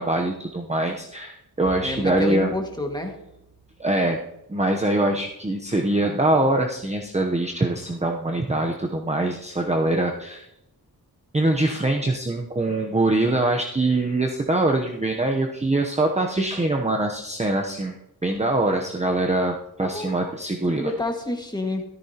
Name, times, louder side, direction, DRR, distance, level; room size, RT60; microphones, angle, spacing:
voice 1, 0.0-2.5 3.8-4.2 4.5-10.5 11.3-20.9, right 2 dB, 15° right, 2 dB, 0.8 m, -23 dB
sound 1, 1.6-4.3, right 8 dB, 75° right, 4.9 m, -46 dB
voice 2, 1.8-3.2 19.8-20.3 20.8-21.9, left 1 dB, 10° left, 2 dB, 1.8 m, -29 dB
13.5 x 13.0 x 2.9 m, 0.86 s
wide cardioid pair, 105°, 39 cm